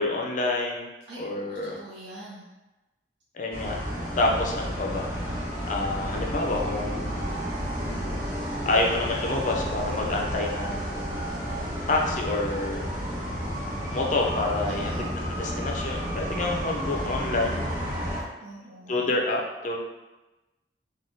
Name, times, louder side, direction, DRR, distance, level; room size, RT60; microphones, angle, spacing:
voice 1, 0.0-0.9 1.2-1.8 3.3-3.8 4.2-7.1 8.6-11.2 11.9-12.9 13.9-17.6 18.9-19.8, left 2 dB, 45° left, 0 dB, 0.4 m, -28 dB
voice 2, 1.1-2.5 14.7-15.1 18.4-19.1, right 1 dB, 70° right, -7 dB, 0.6 m, -44 dB
sound 1, 3.5-18.2, equal, 45° right, 1.0 m, -31 dB
3.4 x 2.2 x 2.6 m, 1.1 s
head